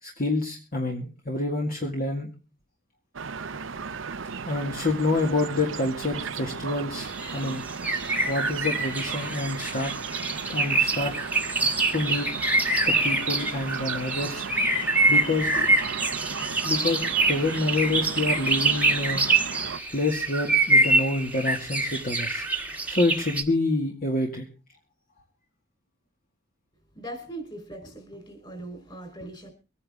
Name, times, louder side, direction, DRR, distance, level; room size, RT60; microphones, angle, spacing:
voice 1, 0.0-2.3 4.5-7.6 8.3-9.9 10.5-11.2 11.9-12.4 12.9-14.5 15.1-15.7 16.6-17.0 17.3-19.3 19.9-22.5 22.9-24.5, left 2 dB, 45° left, 1 dB, 2.1 m, -27 dB
sound 1, 3.1-19.8, right 6 dB, 70° right, 0.8 m, -35 dB
sound 2, 7.0-23.4, right 2 dB, 10° right, 1.5 m, -25 dB
voice 2, 26.9-29.5, right 1 dB, 25° left, 7 dB, 4.3 m, -40 dB
24.0 x 9.8 x 3.6 m, 0.32 s
head